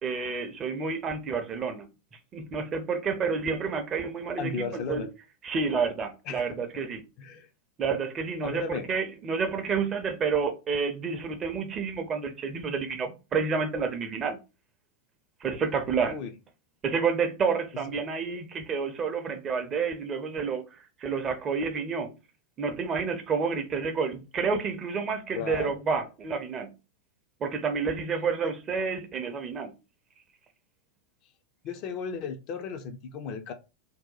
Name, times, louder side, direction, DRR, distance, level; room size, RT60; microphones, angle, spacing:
voice 1, 0.0-1.9 2.3-5.1 5.4-7.0 7.8-14.4 15.4-16.2 16.8-22.1 22.6-26.7 27.4-29.7, right 5 dB, 25° right, 0.5 m, -29 dB
voice 2, 4.4-5.1 6.2-6.6 7.2-7.5 7.9-8.0 8.4-8.9 16.0-16.3 25.3-25.8 28.4-28.5 31.6-33.5, left 5 dB, 40° left, 0.4 m, -35 dB
2.7 x 2.1 x 3.9 m
figure-of-eight pair, 90°, 0 cm